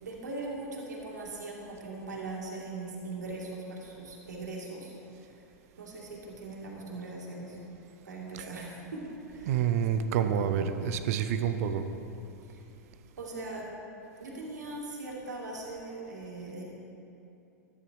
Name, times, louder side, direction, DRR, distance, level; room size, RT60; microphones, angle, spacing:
voice 1, 0.0-4.9 5.2-5.5 5.8-7.7 8.0-9.6 10.1-10.6 12.5-12.6 13.2-13.7 14.2-16.6, right 2 dB, 80° right, -3 dB, 2.6 m, -40 dB
voice 2, 9.4-11.9, right 8 dB, 60° right, 9 dB, 0.9 m, -28 dB
13.5 x 9.9 x 4.8 m, 2.8 s
hypercardioid pair, 100°, 9 cm